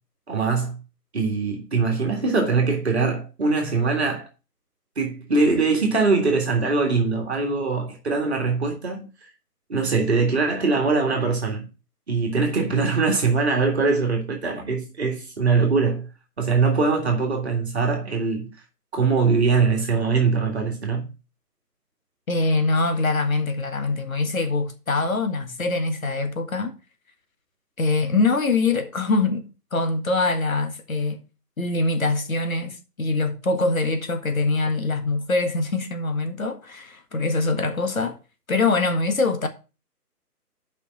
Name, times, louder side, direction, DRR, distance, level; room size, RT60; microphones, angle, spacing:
voice 1, 0.3-0.8 1.1-4.3 5.0-9.1 9.7-11.7 12.1-16.1 16.4-18.5 18.9-21.1, right 4 dB, 40° right, 2.0 m, -22 dB
voice 2, 22.3-26.8 27.8-31.2 31.6-38.2 38.5-39.5, left 3 dB, 55° left, 1.7 m, -23 dB
6.9 x 5.4 x 6.4 m
figure-of-eight pair, 145°, 48 cm